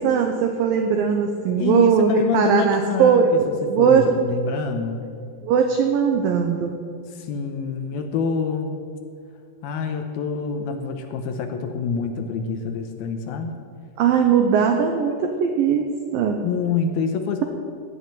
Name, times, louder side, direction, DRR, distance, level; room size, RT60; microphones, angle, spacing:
voice 1, 0.0-4.1 5.4-6.7 14.0-15.9 16.1-16.4, right 7 dB, 70° right, 4 dB, 2.2 m, -19 dB
voice 2, 1.6-3.2 3.6-5.0 7.1-8.7 9.6-13.5 16.4-17.4, left 6 dB, 75° left, 6 dB, 2.5 m, -26 dB
18.5 x 6.5 x 9.2 m, 2.4 s
omnidirectional pair, 4.9 m